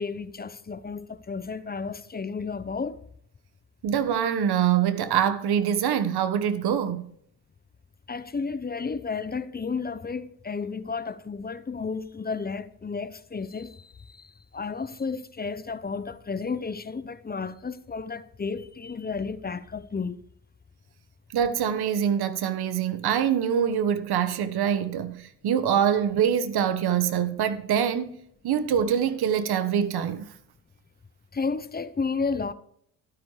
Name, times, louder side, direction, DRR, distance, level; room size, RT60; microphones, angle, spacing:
voice 1, 0.0-3.0 8.1-20.2 31.3-32.5, left 4 dB, 20° left, 0.9 m, -32 dB
voice 2, 3.8-7.1 21.3-28.2 28.4-30.3, right 8 dB, 55° right, 1.5 m, -24 dB
12.5 x 12.5 x 3.3 m
hypercardioid pair, 60°, 44 cm